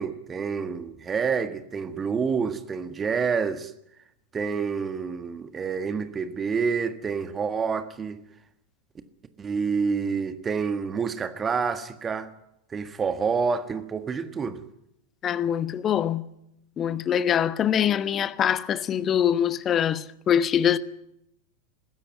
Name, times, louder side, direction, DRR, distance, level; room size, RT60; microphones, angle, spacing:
voice 1, 0.0-3.7 4.3-8.2 9.4-12.3 12.7-14.6, right 5 dB, 20° right, 1.6 m, -28 dB
voice 2, 15.2-16.3 16.8-20.8, left 9 dB, 25° left, 1.0 m, -24 dB
20.5 x 16.5 x 9.4 m
figure-of-eight pair, 90°, 0 cm